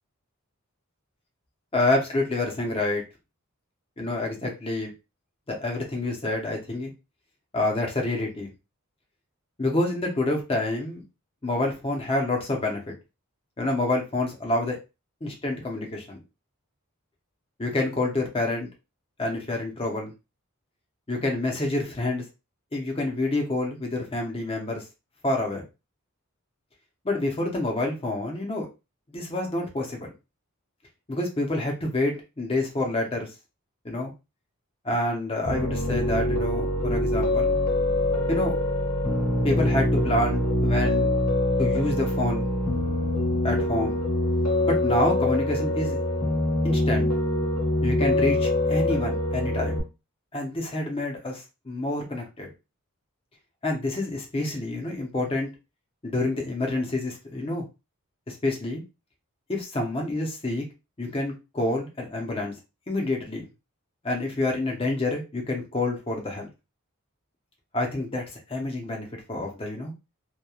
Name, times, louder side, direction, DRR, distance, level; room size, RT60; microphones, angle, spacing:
voice 1, 1.7-3.0 4.0-4.9 5.5-6.9 7.5-8.5 9.6-11.0 11.4-12.8 13.6-14.8 15.2-16.2 17.6-18.7 19.2-20.1 21.1-22.2 22.7-24.8 25.2-25.6 27.0-28.7 29.1-30.1 31.1-33.3 33.8-34.1 34.8-37.6 38.3-38.5 39.4-41.1 41.6-42.5 43.4-44.0 44.7-46.0 46.6-47.1 47.8-49.8 50.3-52.5 53.6-55.5 56.0-57.6 58.3-58.8 59.5-60.6 61.0-62.6 62.9-63.5 64.0-66.5 67.7-69.9, left 2 dB, 25° left, 1 dB, 0.7 m, -28 dB
Piano, 35.5-49.8, left 1 dB, 85° left, 1.3 m, -24 dB
2.9 x 2.2 x 2.3 m, 0.27 s
head